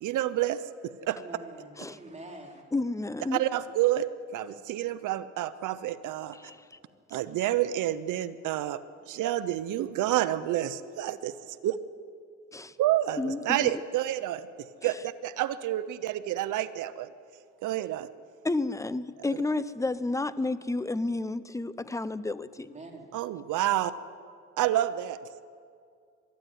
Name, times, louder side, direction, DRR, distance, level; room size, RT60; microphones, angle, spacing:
voice 1, 0.0-1.2 3.3-6.4 7.1-8.8 9.1-11.3 11.6-11.7 12.8-14.4 14.8-17.1 17.6-18.1 23.1-23.9 24.6-25.4, right 13 dB, 85° right, 12 dB, 0.8 m, -29 dB
voice 2, 1.1-2.6 22.6-23.2, right 2 dB, 25° right, 0 dB, 3.9 m, -46 dB
voice 3, 2.7-3.4 6.3-6.8 12.5-12.7 13.2-13.8 18.4-22.7, left 2 dB, 10° left, 16 dB, 0.7 m, -31 dB
22.5 x 13.0 x 9.4 m, 2.2 s
cardioid pair, 90°, 30 cm